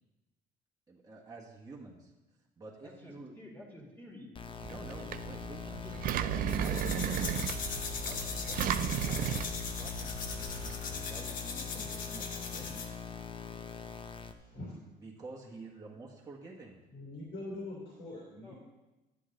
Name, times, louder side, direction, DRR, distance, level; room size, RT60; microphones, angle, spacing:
voice 1, 0.9-2.1 2.6-3.3 4.6-6.0 6.4-9.4 9.7-13.0 14.9-16.8, right 3 dB, 20° right, -3 dB, 1.4 m, -50 dB
voice 2, 2.8-4.3 5.6-5.9 6.3-7.0 18.4-18.5, left 1 dB, 10° left, -3 dB, 2.2 m, -51 dB
sound 1, 4.3-14.3, left 7 dB, 30° left, 0.7 m, -42 dB
Engine, 4.6-10.7, right 10 dB, 60° right, 0.4 m, -35 dB
sound 2, 6.5-13.0, left 4 dB, 55° left, 1.2 m, -40 dB
voice 3, 16.9-18.5, left 2 dB, 70° left, -3 dB, 3.0 m, -43 dB
10.5 x 7.9 x 3.8 m, 1.1 s
cardioid pair, 110°, 17 cm